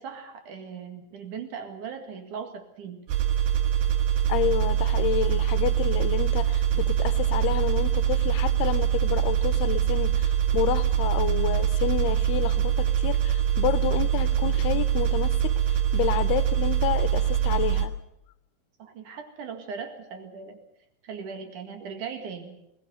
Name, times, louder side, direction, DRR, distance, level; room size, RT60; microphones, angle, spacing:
voice 1, 0.0-3.1 18.8-20.6 21.0-22.6, right 6 dB, 55° right, 7 dB, 3.2 m, -39 dB
sound 1, 3.1-17.9, right 10 dB, 75° right, 3.3 m, -24 dB
voice 2, 4.3-17.9, left 13 dB, 80° left, 14 dB, 2.9 m, -29 dB
20.5 x 18.0 x 8.0 m, 0.82 s
omnidirectional pair, 4.8 m